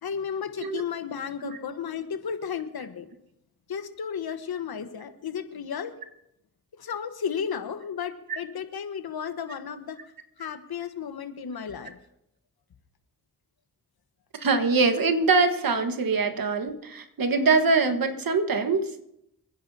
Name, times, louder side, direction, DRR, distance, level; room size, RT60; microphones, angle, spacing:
voice 1, 0.0-3.1 3.7-5.9 6.7-10.0 10.4-12.0, left 7 dB, 70° left, 9 dB, 1.3 m, -33 dB
voice 2, 14.3-18.9, right 4 dB, 60° right, 7 dB, 1.5 m, -23 dB
27.0 x 10.0 x 2.8 m, 0.81 s
supercardioid pair, 45°, 38 cm